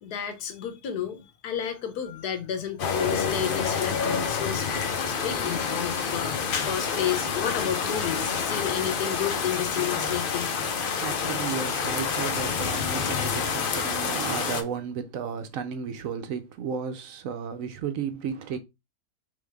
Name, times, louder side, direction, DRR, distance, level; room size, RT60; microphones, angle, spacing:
voice 1, 0.0-4.7 5.1-10.6, left 9 dB, 90° left, 1.4 m, -31 dB
sound 1, 2.8-14.6, left 6 dB, 55° left, 0.6 m, -28 dB
voice 2, 11.0-18.6, right 7 dB, 70° right, 0.9 m, -33 dB
3.7 x 3.3 x 3.3 m
omnidirectional pair, 1.6 m